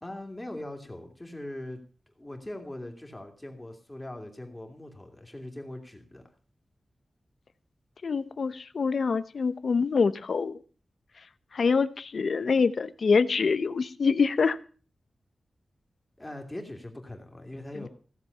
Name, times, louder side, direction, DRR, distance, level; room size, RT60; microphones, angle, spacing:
voice 1, 0.0-1.8 2.2-6.2 16.2-17.9, left 1 dB, 15° left, 4 dB, 2.7 m, -41 dB
voice 2, 8.0-10.6 11.5-14.6 17.7-17.9, left 5 dB, 70° left, 15 dB, 0.8 m, -25 dB
16.0 x 7.2 x 6.8 m, 0.39 s
wide cardioid pair, 125°, 0 cm